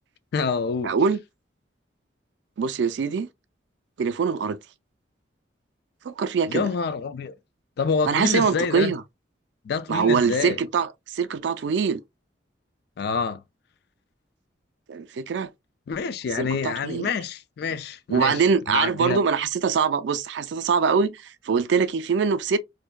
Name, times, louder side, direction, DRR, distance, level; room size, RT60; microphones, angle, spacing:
voice 1, 0.3-0.9 6.5-7.3 7.8-8.9 9.6-10.6 13.0-13.4 15.9-18.4 18.7-19.2, left 5 dB, 60° left, 0.3 m, -27 dB
voice 2, 0.8-1.2 2.6-3.3 4.0-4.6 6.0-6.7 8.1-9.0 9.9-12.0 14.9-15.5 16.3-17.1 18.1-22.6, right 5 dB, 75° right, 0.3 m, -23 dB
2.6 x 2.1 x 2.2 m
head